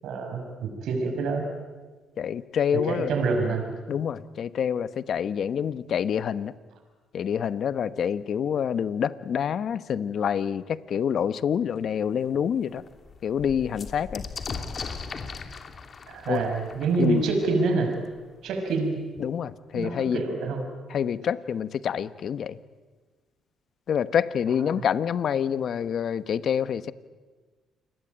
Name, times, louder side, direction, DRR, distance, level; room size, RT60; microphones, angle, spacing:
voice 1, 0.0-1.5 2.7-3.7 16.1-17.9 18.4-19.0 19.7-20.6, right 3 dB, 80° right, 4 dB, 5.6 m, -26 dB
voice 2, 2.2-3.1 3.9-6.5 7.1-12.8 13.2-14.3 16.3-16.4 17.0-17.3 19.2-20.3 20.9-22.6 23.9-26.9, left 8 dB, 60° left, 14 dB, 1.1 m, -27 dB
sound 1, 11.7-11.8 12.3-12.4 12.6-18.2 19.2-19.3 19.5-20.1, left 5 dB, 45° left, 2.9 m, -39 dB
28.0 x 21.5 x 9.3 m, 1.4 s
cardioid pair, 90°, 0 cm